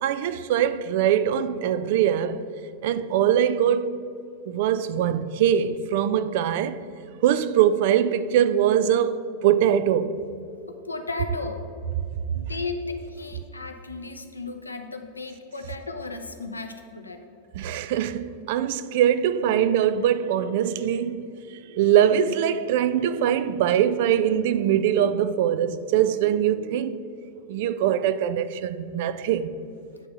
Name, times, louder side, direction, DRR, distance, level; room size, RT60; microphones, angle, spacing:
voice 1, 0.0-2.4 2.8-4.0 4.5-6.8 7.2-10.2 17.5-21.3 21.7-27.0 27.5-29.5, right 10 dB, 50° right, 0.4 m, -22 dB
voice 2, 10.7-11.6 12.3-17.2 19.4-19.5, left 3 dB, 80° left, 0.7 m, -35 dB
9.1 x 3.7 x 6.7 m
figure-of-eight pair, 90°, 0 cm